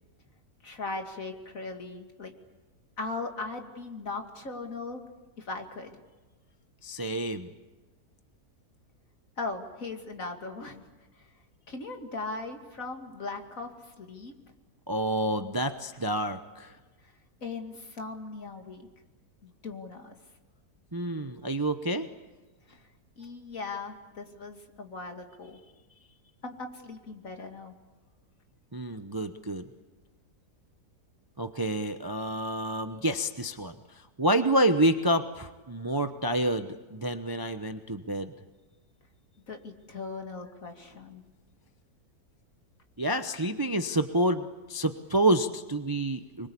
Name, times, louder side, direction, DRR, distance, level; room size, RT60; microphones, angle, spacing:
voice 1, 0.6-2.3 3.0-5.0 5.4-6.0 9.4-10.8 11.2-11.3 11.7-14.3 17.4-18.9 19.4-20.1 22.7-22.8 23.2-25.6 26.4-27.8 39.5-41.2, left 3 dB, 60° left, 4 dB, 2.8 m, -38 dB
voice 2, 6.8-7.5 14.9-16.7 20.9-22.1 28.7-29.7 31.4-38.3 43.0-46.5, right 1 dB, 20° right, 8 dB, 0.7 m, -28 dB
26.0 x 23.0 x 8.5 m, 1.2 s
omnidirectional pair, 1.6 m